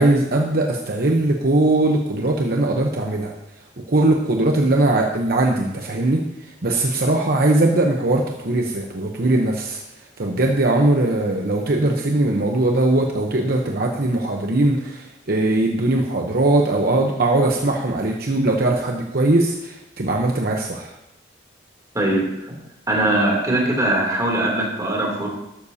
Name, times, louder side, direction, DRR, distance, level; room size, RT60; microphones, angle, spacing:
voice 1, 0.0-3.3 3.9-9.8 10.2-20.9, right 2 dB, 50° right, 1 dB, 0.9 m, -20 dB
voice 2, 21.9-22.5 22.9-25.3, right 1 dB, 20° right, -2 dB, 3.0 m, -21 dB
13.5 x 12.0 x 2.8 m, 0.85 s
head